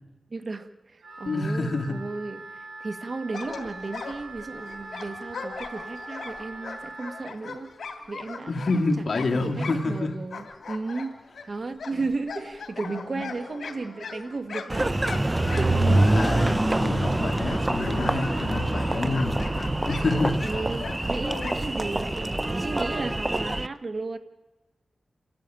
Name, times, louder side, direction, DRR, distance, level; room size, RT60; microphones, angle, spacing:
voice 1, 0.3-7.7 8.1-8.5 9.0-15.2 15.6-15.9 20.4-24.2, right 3 dB, 50° right, 9 dB, 1.7 m, -34 dB
Wind instrument woodwind instrument, 1.0-7.4, right 2 dB, 85° right, 3.2 m, -42 dB
voice 2, 1.2-2.0 8.5-10.1 13.1-13.2 15.7-19.5 19.9-20.4, left 3 dB, 60° left, 3 dB, 2.3 m, -28 dB
sound 1, 3.3-10.1 10.3-17.2 17.5-21.7, left 4 dB, 80° left, 2.9 m, -39 dB
Engine, 14.7-23.7, right 1 dB, 20° right, 0.7 m, -25 dB
28.5 x 13.0 x 9.1 m, 1.2 s
wide cardioid pair, 85°, 0 cm